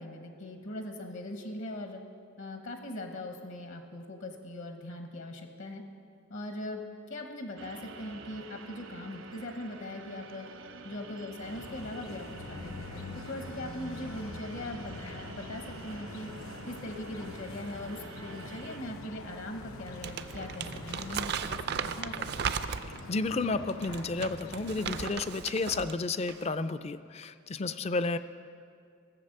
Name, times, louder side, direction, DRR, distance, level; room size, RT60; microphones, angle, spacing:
voice 1, 0.0-2.0 2.4-5.8 6.3-6.8 7.1-10.5 10.8-16.3 16.7-22.7, left 1 dB, 65° left, 4 dB, 1.2 m, -40 dB
sound 1, 7.6-18.8, right 3 dB, 75° right, 1.0 m, -48 dB
sound 2, 11.4-25.1, left 2 dB, 90° left, 0.9 m, -45 dB
Crumpling crinkling, 19.9-23.1 23.7-26.0 26.2-26.5, right 7 dB, 50° right, 0.4 m, -36 dB
voice 2, 23.1-28.2, left 3 dB, 30° left, 13 dB, 0.4 m, -31 dB
15.5 x 7.8 x 6.6 m, 2.3 s
head